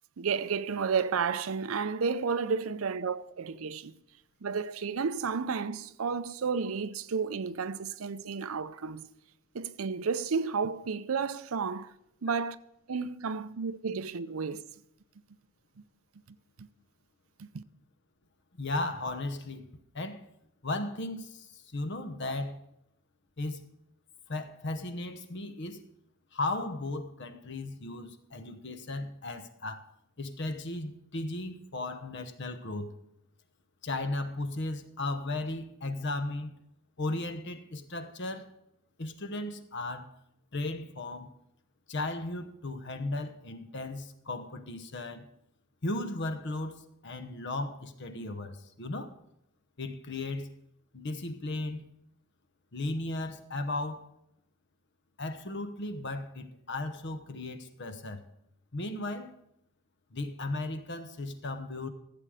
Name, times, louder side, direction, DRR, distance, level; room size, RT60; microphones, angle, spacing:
voice 1, 0.2-3.9 4.4-9.1 9.5-11.9 12.2-12.6 12.9-14.6 16.6-16.7 17.4-17.6, right 5 dB, 85° right, 0.6 m, -32 dB
voice 2, 18.6-19.7 19.9-20.3 20.6-22.6 23.4-23.6 24.3-25.8 26.3-29.9 30.2-32.9 33.8-36.5 37.0-38.5 39.0-40.1 40.5-41.3 41.9-45.3 45.8-49.1 49.8-50.5 50.9-51.9 52.7-54.1 55.2-58.3 58.7-59.3 60.1-61.9, left 2 dB, 60° left, 1.0 m, -36 dB
15.0 x 7.9 x 4.9 m
head